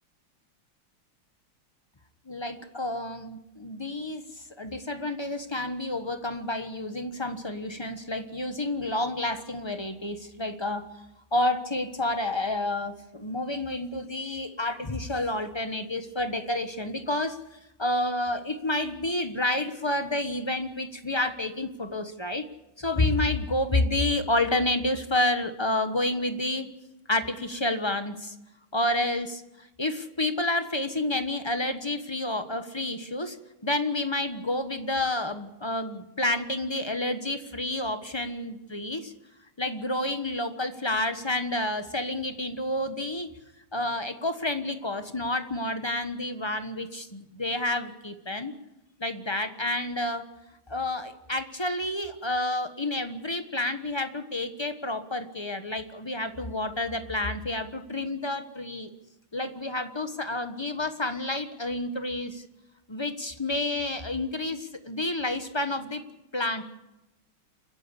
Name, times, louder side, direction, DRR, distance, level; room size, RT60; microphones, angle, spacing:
voice 1, 2.3-10.8 11.3-17.4 17.8-22.5 22.8-26.7 27.1-28.3 28.7-33.4 33.6-39.1 39.6-43.3 43.7-48.5 49.0-50.2 50.7-58.9 59.3-62.4 62.9-66.0 66.3-66.6, left 1 dB, 20° left, 8 dB, 0.9 m, -29 dB
29.5 x 10.5 x 8.4 m, 0.95 s
omnidirectional pair, 2.3 m